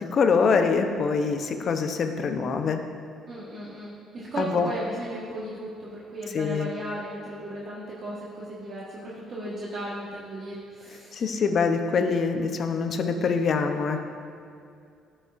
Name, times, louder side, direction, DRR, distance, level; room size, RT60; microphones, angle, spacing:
voice 1, 0.1-2.8 4.4-4.7 6.3-6.7 11.1-14.0, left 5 dB, 50° left, 6 dB, 0.6 m, -24 dB
voice 2, 3.3-11.3, right 1 dB, 45° right, -7 dB, 1.3 m, -36 dB
12.5 x 5.5 x 2.5 m, 2.4 s
cardioid pair, 90°, 0 cm